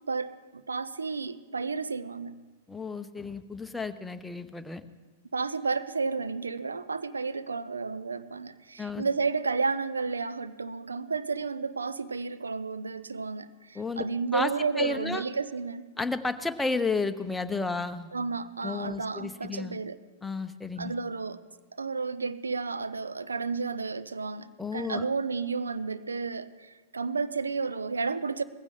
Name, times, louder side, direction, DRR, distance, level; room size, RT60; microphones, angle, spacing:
voice 1, 0.1-2.4 5.3-15.9 18.1-20.0 20.8-21.4 21.8-28.4, right 4 dB, 85° right, 14 dB, 0.7 m, -32 dB
voice 2, 2.7-4.8 8.8-9.0 13.7-14.1 14.3-14.5 14.8-15.2 16.0-18.1 18.6-19.8 20.2-20.9 24.6-25.0, left 3 dB, 5° left, 8 dB, 0.9 m, -32 dB
19.5 x 15.5 x 3.7 m, 1.3 s
hypercardioid pair, 105°, 0 cm